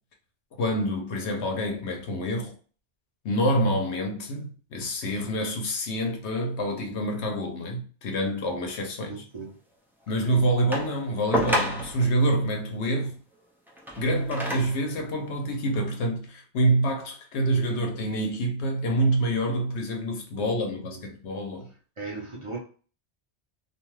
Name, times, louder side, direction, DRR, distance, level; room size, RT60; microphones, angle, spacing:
voice 1, 0.6-2.6 3.2-9.1 10.1-13.2 14.0-21.7, right 1 dB, 80° left, 1.0 m, -27 dB
voice 2, 9.1-9.6 20.3-21.1 22.0-22.6, right 3 dB, 35° right, 0.7 m, -38 dB
sound 1, 10.7-12.1 13.7-14.9 15.7-15.8, equal, 5° right, 0.3 m, -29 dB
2.6 x 2.3 x 3.1 m
omnidirectional pair, 1.1 m